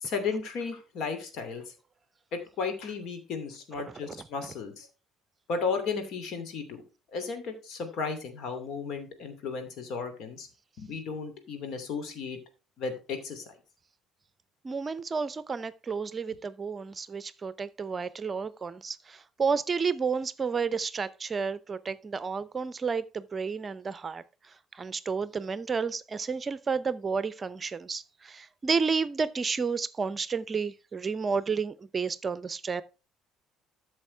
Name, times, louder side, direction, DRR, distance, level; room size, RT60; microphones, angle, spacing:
voice 1, 0.0-1.7 2.3-4.9 5.5-6.8 7.1-10.5 10.8-12.4 12.8-13.4, left 5 dB, 55° left, 2.7 m, -34 dB
voice 2, 14.6-32.8, right 5 dB, 30° right, 0.7 m, -31 dB
13.0 x 6.4 x 3.4 m
figure-of-eight pair, 50°, 0 cm